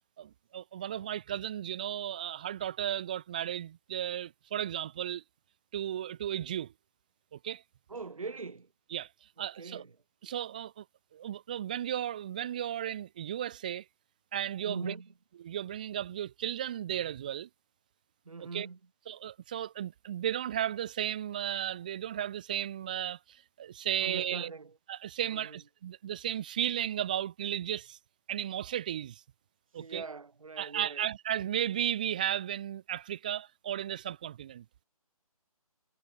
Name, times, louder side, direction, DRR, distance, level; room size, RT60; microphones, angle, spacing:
voice 1, 0.2-5.2 5.7-6.7 7.3-7.6 8.9-9.1 9.4-9.8 10.2-10.8 11.1-13.8 14.3-14.9 15.4-17.5 18.5-18.7 19.1-24.5 24.9-28.0 28.3-29.2 29.7-30.0 30.6-34.6, right 10 dB, 15° right, 0.9 m, -34 dB
voice 2, 7.9-8.7 9.4-10.0 14.6-15.1 18.2-18.8 24.0-24.8 25.3-25.6 29.8-31.1, right 4 dB, 65° right, 3.0 m, -42 dB
hypercardioid pair, 175°, 19 cm